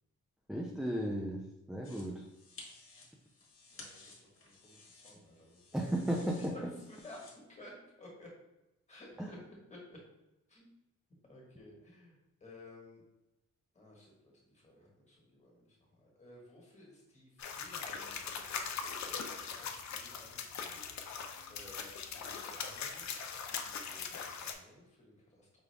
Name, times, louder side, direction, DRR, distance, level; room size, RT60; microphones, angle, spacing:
voice 1, 0.5-1.4 1.7-2.3 5.7-6.7 9.2-9.3, right 1 dB, ahead, -1 dB, 0.3 m, -34 dB
sound 1, 1.8-7.3, left 3 dB, 45° left, 1.2 m, -56 dB
voice 2, 3.7-5.6 6.1-6.2 6.5-8.3 8.9-9.4 9.7-10.0 10.5-10.7 11.2-13.0 13.7-20.8 21.5-25.6, left 1 dB, 25° left, -3 dB, 1.4 m, -55 dB
sound 2, 17.4-24.5, left 6 dB, 70° left, 0.5 m, -41 dB
5.3 x 2.3 x 3.3 m, 0.96 s
wide cardioid pair, 125°, 29 cm